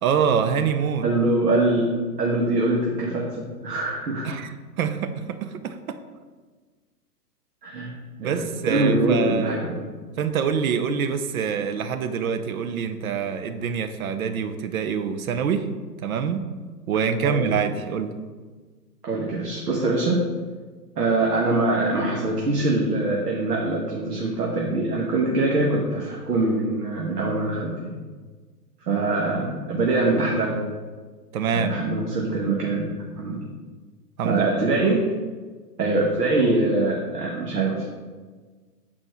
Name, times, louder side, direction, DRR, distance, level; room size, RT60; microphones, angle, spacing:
voice 1, 0.0-1.0 4.2-6.0 8.2-9.7 10.2-15.7 16.0-16.4 16.9-18.2 31.3-31.8 34.2-34.6, right 6 dB, 60° right, 9 dB, 0.8 m, -25 dB
voice 2, 1.0-1.9 2.2-4.3 7.6-7.9 8.2-9.9 17.2-17.5 19.0-20.3 21.0-28.0 28.9-30.7 31.5-32.9 33.2-33.5 34.2-35.0 35.8-37.9, right 2 dB, 75° right, -2 dB, 1.4 m, -23 dB
8.1 x 4.3 x 4.4 m, 1.4 s
hypercardioid pair, 125°, 48 cm